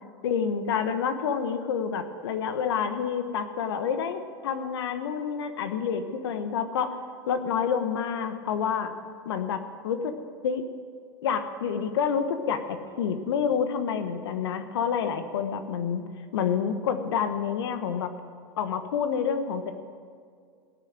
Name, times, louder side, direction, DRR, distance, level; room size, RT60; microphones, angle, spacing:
voice 1, 0.2-7.0 7.3-8.9 9.2-10.1 10.4-10.6 11.2-16.1 16.3-18.1 18.6-19.7, left 7 dB, 80° left, 9 dB, 1.2 m, -28 dB
18.0 x 6.7 x 8.9 m, 2.1 s
hypercardioid pair, 95°, 13 cm